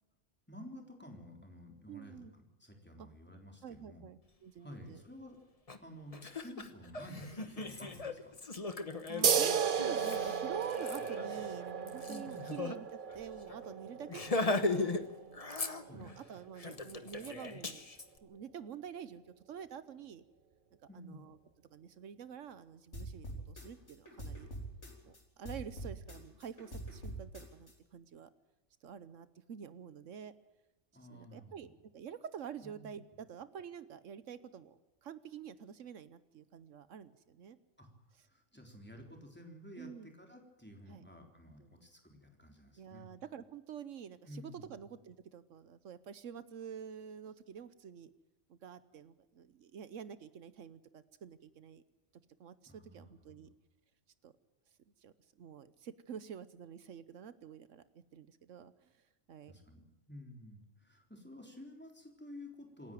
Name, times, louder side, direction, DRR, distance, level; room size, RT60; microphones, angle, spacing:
voice 1, 0.5-2.2 2.6-4.0 4.6-5.4 5.8-8.3 12.1-12.5 15.8-16.1 20.9-21.3 30.9-31.7 32.6-32.9 37.8-37.9 38.3-43.1 44.2-44.8 52.7-53.5 59.5-62.9, left 1 dB, 10° left, 2 dB, 3.7 m, -52 dB
voice 2, 1.9-2.3 3.0-3.1 3.6-5.0 9.1-15.0 15.9-17.8 18.2-19.2 19.5-20.2 20.9-21.4 21.7-24.5 25.0-28.3 28.8-30.3 31.1-37.6 39.8-40.1 40.9-41.1 41.6-41.7 42.8-48.1 48.5-51.8 52.4-53.5 54.2-54.3 55.0-57.8 58.1-58.9 59.3-59.5, right 8 dB, 80° right, 14 dB, 1.2 m, -47 dB
Laughter, 5.7-5.8 6.1-12.8 13.1-13.2 13.5-13.7 14.1-15.0 15.3-16.2 16.6-18.1, left 2 dB, 30° left, 1.2 m, -38 dB
sound 1, 9.2-16.4, right 7 dB, 45° right, 0.9 m, -35 dB
sound 2, 22.9-25.2 25.4-27.7, right 1 dB, 65° left, 4.2 m, -44 dB
27.0 x 10.5 x 9.1 m, 1.1 s
omnidirectional pair, 1.3 m